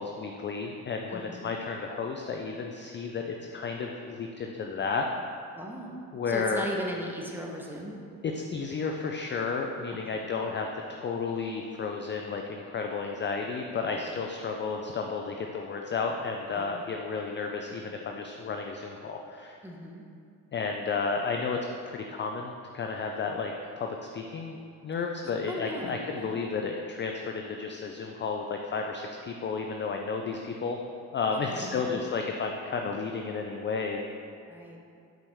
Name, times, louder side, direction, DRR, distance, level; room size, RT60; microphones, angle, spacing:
voice 1, 0.0-5.1 6.1-6.7 8.2-19.6 20.5-21.6 21.8-24.6 24.8-30.8 31.1-34.0, left 4 dB, 30° left, 2 dB, 0.4 m, -32 dB
voice 2, 1.1-1.5 5.5-5.9 6.3-7.9 10.0-10.2 13.9-14.1 16.5-16.6 19.6-20.0 25.5-26.4 31.3-32.0 34.5-34.8, equal, 5° right, -1 dB, 0.9 m, -38 dB
5.4 x 4.9 x 3.5 m, 2.4 s
supercardioid pair, 65°, 43 cm